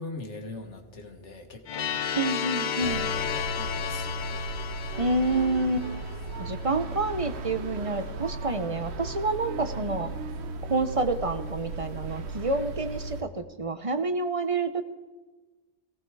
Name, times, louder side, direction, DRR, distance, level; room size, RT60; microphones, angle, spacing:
voice 1, 0.0-2.0 2.8-4.1, left 2 dB, 75° left, 4 dB, 1.8 m, -41 dB
sound 1, 1.7-6.5, left 8 dB, 50° left, 0.7 m, -33 dB
voice 2, 2.1-3.1 5.0-5.8 6.4-10.1 10.6-14.8, right 2 dB, 30° right, 9 dB, 0.9 m, -28 dB
sound 2, 2.8-13.2, right 2 dB, 65° right, 1.2 m, -36 dB
18.5 x 16.5 x 4.8 m, 1.3 s
omnidirectional pair, 1.2 m